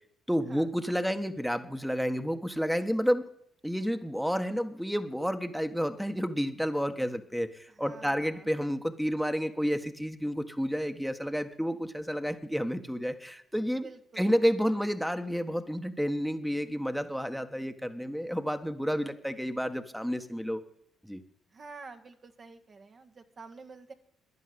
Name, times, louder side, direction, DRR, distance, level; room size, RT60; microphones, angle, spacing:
voice 1, 0.3-3.3 3.6-13.9 14.2-20.6 21.0-21.2, equal, ahead, 7 dB, 1.4 m, -30 dB
voice 2, 7.7-8.5 13.8-14.3 21.5-23.9, right 4 dB, 45° right, 6 dB, 1.7 m, -48 dB
15.0 x 11.0 x 8.0 m, 0.72 s
hypercardioid pair, 55°, 0 cm